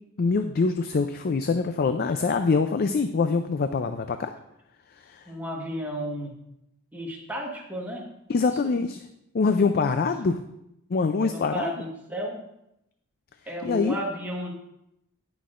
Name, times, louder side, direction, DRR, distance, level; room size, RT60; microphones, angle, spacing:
voice 1, 0.2-4.3 5.0-5.3 8.3-9.0 9.3-10.4 10.9-11.7 13.6-14.0, left 4 dB, 45° left, 8 dB, 0.4 m, -24 dB
voice 2, 5.3-6.3 6.9-8.1 8.4-8.7 9.8-10.0 11.2-12.4 13.5-14.5, equal, 5° right, -2 dB, 1.4 m, -33 dB
17.5 x 6.0 x 2.5 m, 0.83 s
head